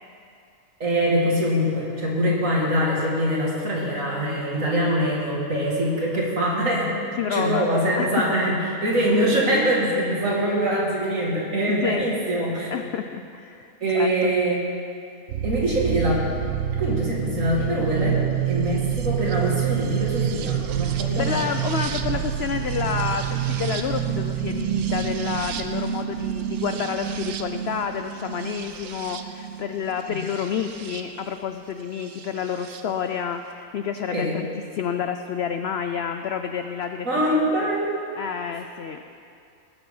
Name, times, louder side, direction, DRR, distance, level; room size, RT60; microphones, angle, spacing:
voice 1, 0.8-7.0 7.3-12.7 13.8-14.6 15.4-16.3 16.8-21.5 30.1-30.2 34.1-34.4 37.0-37.9, equal, 55° right, -4 dB, 2.7 m, -23 dB
voice 2, 7.2-7.7 8.0-8.2 11.7-12.0 12.7-14.3 20.9-37.7 38.2-39.1, left 7 dB, 75° left, 7 dB, 0.6 m, -29 dB
sound 1, 15.3-31.0 32.2-32.8, right 10 dB, 75° right, 1.2 m, -27 dB
19.0 x 7.6 x 5.5 m, 2.5 s
omnidirectional pair, 1.6 m